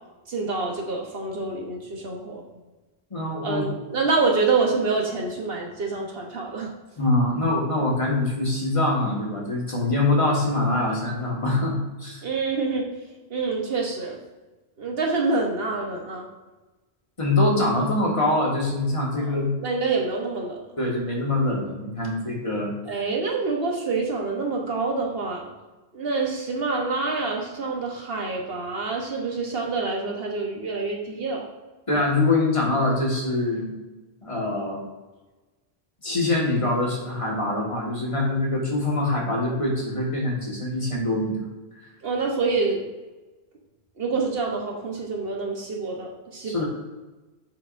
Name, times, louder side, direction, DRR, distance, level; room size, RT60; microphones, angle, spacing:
voice 1, 0.3-2.4 3.4-6.7 12.2-12.9 13.3-14.2 14.8-16.3 19.1-19.3 19.6-20.7 22.9-25.5 25.9-31.4 42.0-42.8 44.0-46.6, right 3 dB, 70° right, 0 dB, 1.4 m, -26 dB
voice 2, 3.1-3.7 7.0-12.2 17.2-19.5 20.8-22.7 31.9-33.8 34.2-34.8 36.0-41.4 46.4-46.6, left 2 dB, 30° left, -3 dB, 1.9 m, -24 dB
7.3 x 6.6 x 2.7 m, 1.2 s
omnidirectional pair, 1.0 m